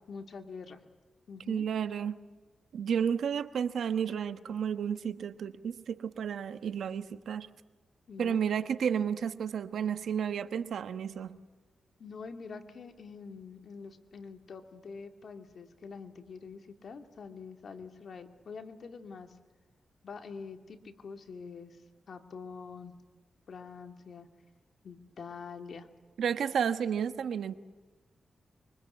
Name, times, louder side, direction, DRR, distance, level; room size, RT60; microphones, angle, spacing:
voice 1, 0.1-0.8 1.3-1.7 8.1-8.4 12.0-19.4 20.0-21.8 22.1-22.9 23.5-24.3 24.8-25.9, left 5 dB, 65° left, 6 dB, 2.5 m, -45 dB
voice 2, 1.5-2.2 2.7-7.5 8.2-11.4 26.2-27.6, right 7 dB, 85° right, 11 dB, 1.2 m, -32 dB
25.0 x 24.0 x 8.3 m, 1.3 s
cardioid pair, 85°, 0 cm